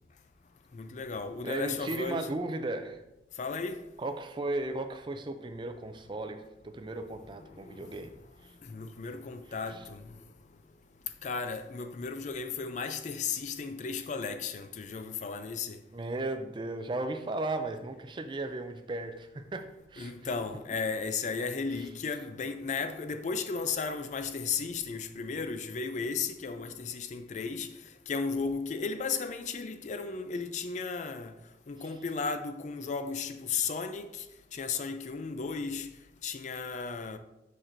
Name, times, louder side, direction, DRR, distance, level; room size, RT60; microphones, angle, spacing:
voice 1, 0.7-2.3 3.4-3.9 7.5-8.1 8.6-10.2 11.2-15.8 20.0-27.7 28.1-31.3 31.7-34.3 34.5-35.9 36.2-37.2, left 5 dB, 40° left, 0.4 m, -35 dB
voice 2, 1.4-3.0 4.0-8.1 8.4-8.6 9.7-9.8 15.9-20.1 21.8-21.9 31.8-31.9, right 2 dB, 25° right, 0.4 m, -36 dB
6.3 x 6.0 x 2.6 m
head